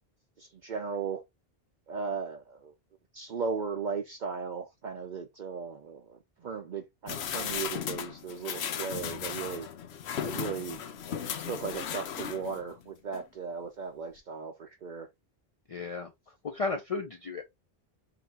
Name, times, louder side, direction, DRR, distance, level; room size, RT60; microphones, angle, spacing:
voice 1, 0.4-1.2 1.9-2.7 3.1-9.7 10.2-10.8 11.4-15.1, right 5 dB, 55° right, 0.7 m, -36 dB
sound 1, 7.1-12.7 13.1-13.2, left 8 dB, 90° left, 0.9 m, -36 dB
voice 2, 15.7-16.1 16.4-17.4, left 4 dB, 45° left, 0.5 m, -33 dB
5.1 x 2.7 x 2.8 m
omnidirectional pair, 1.0 m